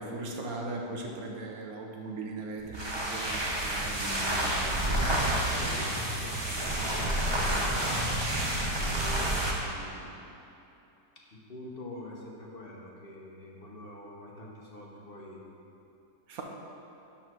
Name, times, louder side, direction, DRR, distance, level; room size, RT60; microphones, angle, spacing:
voice 1, 0.0-5.3 16.3-16.4, right 2 dB, 60° right, 1 dB, 1.4 m, -39 dB
sound 1, 2.6-9.6, right 1 dB, 20° right, 0.8 m, -29 dB
voice 2, 5.5-8.0 8.6-10.2 11.5-15.4, left 1 dB, 40° left, -3 dB, 1.1 m, -45 dB
11.5 x 4.0 x 6.2 m, 2.8 s
omnidirectional pair, 1.8 m